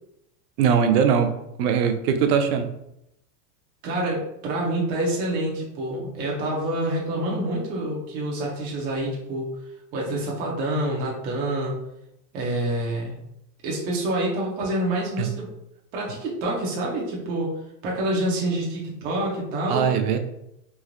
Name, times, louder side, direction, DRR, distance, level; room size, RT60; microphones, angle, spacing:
voice 1, 0.6-1.3 1.6-2.7 15.2-15.3 19.7-20.2, right 7 dB, 65° right, 7 dB, 0.6 m, -20 dB
voice 2, 3.8-9.5 9.9-11.8 12.3-13.2 13.6-15.5 15.9-17.5 17.8-19.9, right 1 dB, 20° right, -3 dB, 0.3 m, -27 dB
3.1 x 2.5 x 2.5 m, 0.82 s
supercardioid pair, 130°, 49 cm